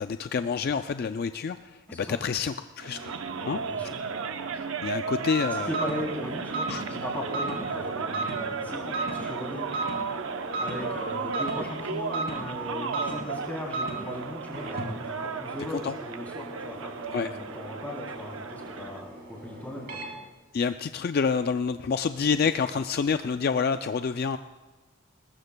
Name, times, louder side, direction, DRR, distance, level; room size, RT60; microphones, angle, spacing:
voice 1, 0.0-3.1 3.5-3.6 4.5-5.8 6.7-6.9 15.8-15.9 17.1-17.3 20.5-24.4, left 5 dB, 50° left, 10 dB, 0.3 m, -28 dB
sound 1, 2.8-19.0, right 5 dB, 75° right, 0.7 m, -34 dB
voice 2, 3.4-3.9 5.5-9.7 10.6-14.8 15.0-20.0, left 1 dB, 10° left, -4 dB, 3.5 m, -38 dB
sound 2, 5.3-20.2, right 2 dB, 45° right, 2.8 m, -37 dB
21.0 x 19.5 x 2.2 m, 1.3 s
head